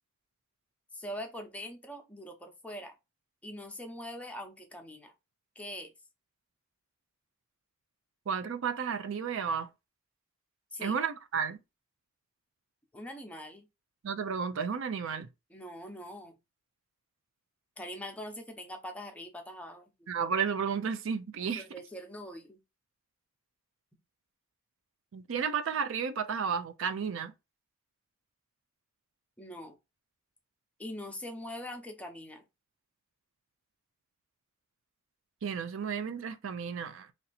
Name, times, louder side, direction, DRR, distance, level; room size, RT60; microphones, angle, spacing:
voice 1, 0.9-3.0 3.4-5.1 5.6-5.9 10.7-10.9 12.9-13.7 15.5-16.3 17.8-19.9 21.5-22.6 29.4-29.8 30.8-32.4, equal, 5° left, 0.7 m, -42 dB
voice 2, 8.3-9.7 10.8-11.6 14.0-15.3 20.1-21.6 25.1-27.3 35.4-37.1, right 6 dB, 65° right, 0.4 m, -32 dB
3.1 x 2.8 x 4.0 m
head